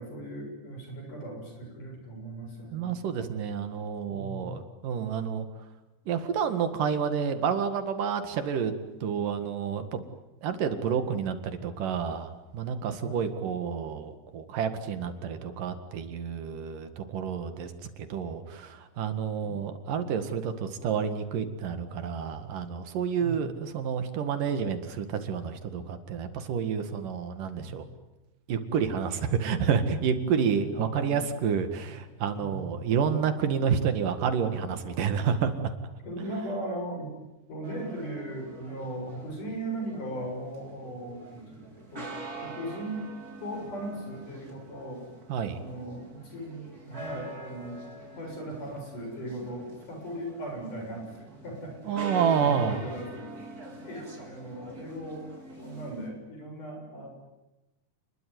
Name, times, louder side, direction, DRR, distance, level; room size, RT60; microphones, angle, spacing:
voice 1, 0.0-2.9 4.1-4.6 13.0-13.2 23.2-23.4 27.5-27.8 30.3-31.1 32.4-32.6 36.0-37.1 37.5-42.1 42.4-43.1 43.4-45.1 45.5-47.9 48.2-53.3 53.6-55.3 55.6-57.1, right 1 dB, 75° left, 2 dB, 8.7 m, -38 dB
voice 2, 2.7-5.5 6.1-8.7 9.0-10.0 10.4-27.9 28.5-35.7 45.3-45.6 51.9-52.8, right 7 dB, 85° right, 8 dB, 3.6 m, -29 dB
sound 1, 37.6-56.1, right 2 dB, 25° right, 4.7 m, -45 dB
28.5 x 21.5 x 9.6 m, 1.0 s
omnidirectional pair, 3.7 m